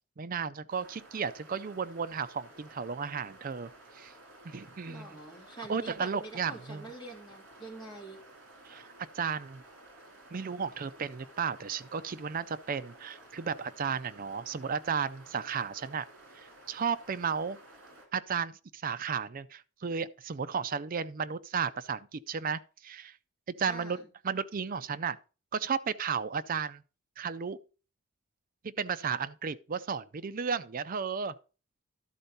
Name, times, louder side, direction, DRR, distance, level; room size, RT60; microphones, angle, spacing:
voice 1, 0.2-4.1 4.4-5.1 5.7-6.9 8.7-8.8 9.1-9.6 10.3-16.1 16.4-17.6 18.1-23.2 23.5-24.0 24.2-25.2 25.5-26.8 27.2-27.6 28.6-31.3, right 6 dB, 40° right, 0.4 m, -34 dB
sound 1, 0.7-18.1, right 2 dB, 65° right, 2.7 m, -54 dB
voice 2, 4.9-8.2 23.7-24.1, right 2 dB, 20° left, 2.9 m, -46 dB
12.0 x 4.4 x 5.3 m
head